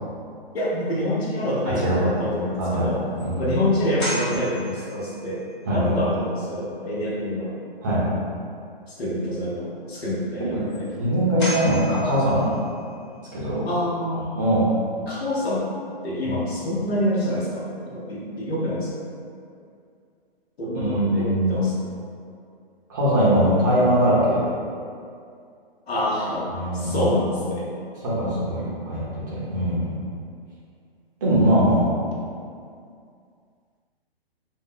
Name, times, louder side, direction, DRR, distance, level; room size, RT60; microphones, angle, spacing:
voice 1, 0.5-3.0 3.4-5.4 5.7-7.5 8.9-10.9 13.6-14.3 15.1-15.7 16.0-18.9 20.6-21.9 25.9-27.7 28.2-28.4, left 1 dB, 85° left, -6 dB, 0.8 m, -26 dB
sound 1, 2.5-2.6 3.2-3.3 4.0-5.6 10.7-10.8 11.4-13.0, equal, 25° left, 0.8 m, -34 dB
voice 2, 2.6-2.9 3.2-3.5 5.7-5.9 7.8-8.0 10.5-10.6 10.9-12.5 13.3-13.6 14.3-14.6 16.2-16.3 20.7-21.6 22.9-24.4 26.5-27.1 28.0-29.9 31.2-31.8, equal, 20° right, -8 dB, 0.5 m, -21 dB
2.6 x 2.1 x 3.6 m, 2.3 s
hypercardioid pair, 160°, 30 cm